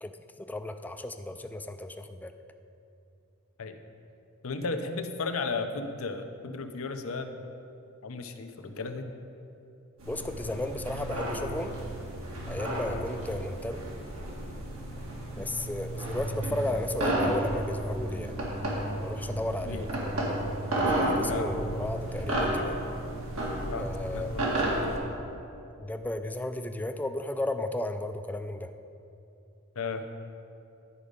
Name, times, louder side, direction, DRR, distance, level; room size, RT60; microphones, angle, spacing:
voice 1, 0.0-2.3 10.1-11.8 12.5-13.9 15.4-18.3 19.0-20.2 20.7-22.8 23.8-24.3 25.8-28.7, left 1 dB, 10° left, 8 dB, 0.3 m, -34 dB
voice 2, 4.4-7.5 8.0-9.1 19.6-19.9 21.3-21.5 23.7-25.0 29.8-30.0, left 4 dB, 85° left, 7 dB, 0.6 m, -35 dB
sound 1, 10.0-25.0, right 1 dB, 90° right, 2.1 m, -32 dB
sound 2, 16.1-21.9, equal, 55° right, 1.7 m, -38 dB
11.0 x 5.2 x 5.0 m, 2.7 s
head